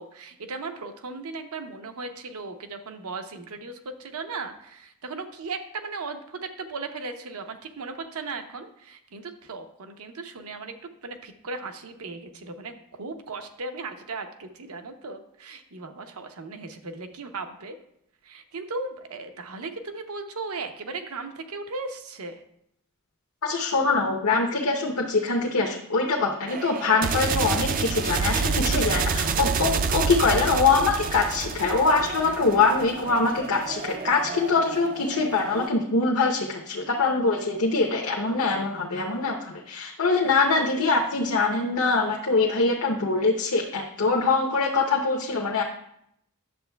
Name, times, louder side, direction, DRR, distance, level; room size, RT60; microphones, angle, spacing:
voice 1, 0.0-17.8 18.2-22.4, right 3 dB, 80° right, 6 dB, 0.7 m, -37 dB
voice 2, 23.4-45.6, left 3 dB, 75° left, -1 dB, 0.8 m, -23 dB
sound 1, 26.5-35.7, right 5 dB, 40° right, 0.3 m, -29 dB
10.5 x 7.1 x 2.2 m, 0.74 s
head